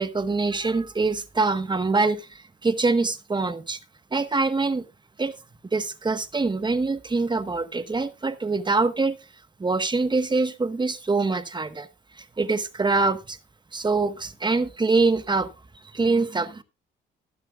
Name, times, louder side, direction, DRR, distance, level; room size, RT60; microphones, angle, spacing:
voice 1, 0.0-3.8 4.1-4.8 5.2-5.3 5.7-9.2 9.6-11.9 12.2-13.4 13.7-15.5 15.9-16.6, right 3 dB, 20° right, 1.2 m, -24 dB
21.5 x 7.3 x 2.3 m
cardioid pair, 90°, 20 cm